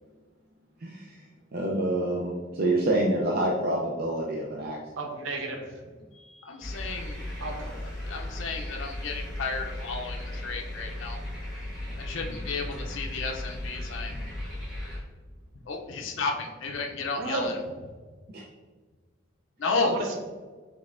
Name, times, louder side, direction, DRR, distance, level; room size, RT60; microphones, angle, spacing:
voice 1, 1.5-4.8 18.3-18.4, right 1 dB, 50° right, -1 dB, 0.5 m, -27 dB
voice 2, 5.0-5.7 7.4-7.7 17.2-17.5 19.8-20.2, right 2 dB, 80° right, 2 dB, 0.8 m, -32 dB
voice 3, 6.1-7.3 8.1-11.2 12.0-14.2 15.7-17.5 19.6-20.0, left 4 dB, 70° left, 1 dB, 0.5 m, -33 dB
sound 1, 6.6-15.0, left 1 dB, ahead, 1.4 m, -36 dB
5.2 x 3.3 x 2.5 m, 1.4 s
head